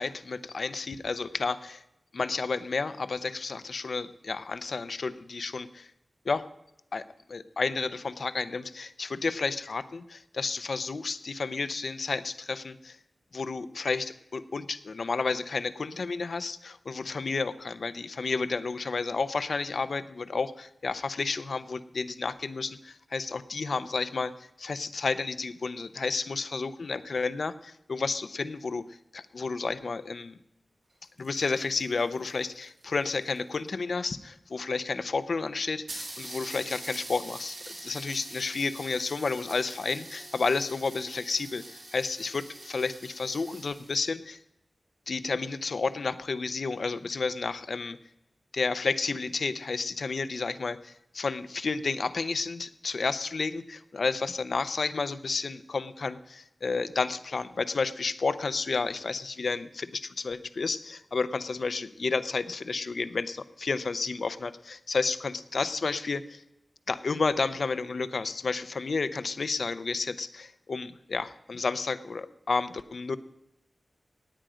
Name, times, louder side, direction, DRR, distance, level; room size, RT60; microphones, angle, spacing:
voice 1, 0.0-1.8 2.1-5.9 6.2-6.4 6.9-7.0 7.3-13.0 13.3-28.8 29.1-30.4 31.2-44.4 45.1-48.0 48.5-66.4 66.9-73.2, left 4 dB, 70° left, 13 dB, 0.7 m, -31 dB
sound 1, 30.9-33.7 34.5-34.6 34.9-35.0 35.3-35.4 35.9-44.1, right 1 dB, 75° right, 5.6 m, -44 dB
18.0 x 8.9 x 5.0 m, 0.84 s
wide cardioid pair, 75°, 0 cm